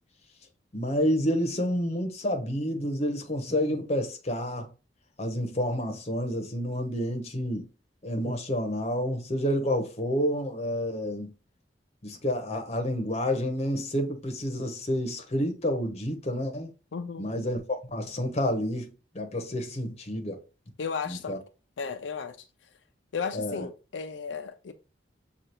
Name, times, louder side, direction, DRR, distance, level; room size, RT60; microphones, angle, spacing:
voice 1, 0.7-4.7 5.2-7.7 8.0-11.3 12.0-16.7 17.2-20.4 21.1-21.4 23.3-23.7, equal, 35° left, 0.9 m, -29 dB
voice 2, 16.9-17.4 20.8-21.4 21.8-22.5 23.1-24.7, left 5 dB, 90° left, 0.5 m, -34 dB
6.5 x 2.4 x 2.9 m
head